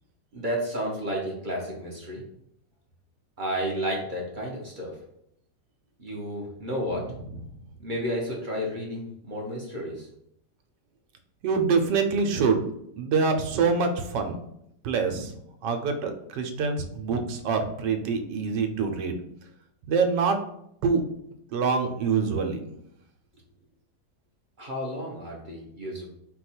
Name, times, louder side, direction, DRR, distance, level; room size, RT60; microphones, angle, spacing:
voice 1, 0.3-2.2 3.4-5.0 6.0-7.0 7.8-10.1 24.6-26.1, equal, 50° right, -2 dB, 0.6 m, -32 dB
voice 2, 11.4-12.6 13.0-14.4 14.8-15.3 15.6-19.2 19.9-20.4 20.8-21.0 21.5-22.6, right 5 dB, 85° right, 5 dB, 1.3 m, -25 dB
4.5 x 2.3 x 4.2 m, 0.74 s
omnidirectional pair, 1.9 m